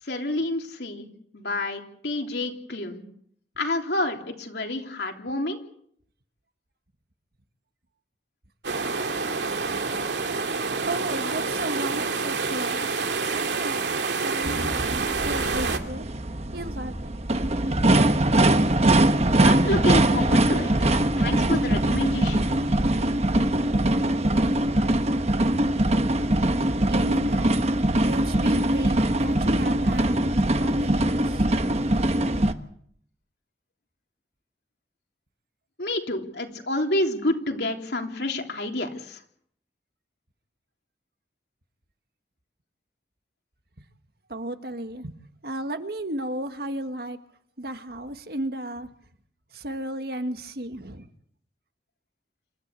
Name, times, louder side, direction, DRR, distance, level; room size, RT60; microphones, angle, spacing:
voice 1, 0.0-1.1 1.3-3.0 3.6-5.6 19.4-20.7 21.2-22.5 35.8-39.2, left 1 dB, 70° left, 3 dB, 3.3 m, -28 dB
sound 1, 8.6-15.8, right 4 dB, 85° right, 2.4 m, -28 dB
voice 2, 10.8-13.8 14.2-16.1 16.5-17.6 26.9-27.8 28.0-30.2 30.6-31.4 43.8-43.9 44.3-45.2 45.4-47.2 47.6-48.9 49.5-51.1, right 1 dB, 60° right, 8 dB, 1.7 m, -33 dB
sound 2, 14.4-32.5, right 1 dB, 40° right, 1.2 m, -22 dB
27.5 x 14.5 x 8.3 m, 0.65 s
head